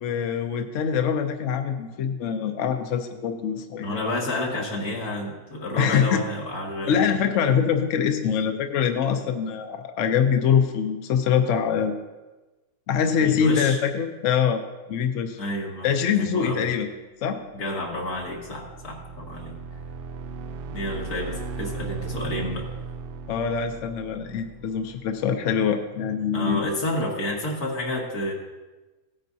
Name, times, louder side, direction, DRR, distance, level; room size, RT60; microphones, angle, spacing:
voice 1, 0.0-4.0 5.8-6.2 6.9-11.9 12.9-14.6 14.9-15.4 15.8-16.9 17.2-17.4 23.3-26.6, left 7 dB, 60° left, 6 dB, 1.0 m, -24 dB
voice 2, 3.8-7.0 13.2-13.8 15.4-15.9 16.1-16.7 17.5-19.5 20.7-22.7 26.3-28.3, left 1 dB, 90° left, -2 dB, 2.4 m, -30 dB
sound 1, 17.9-25.4, right 4 dB, 85° right, 0.5 m, -37 dB
16.5 x 9.2 x 2.7 m, 1.2 s
omnidirectional pair, 1.6 m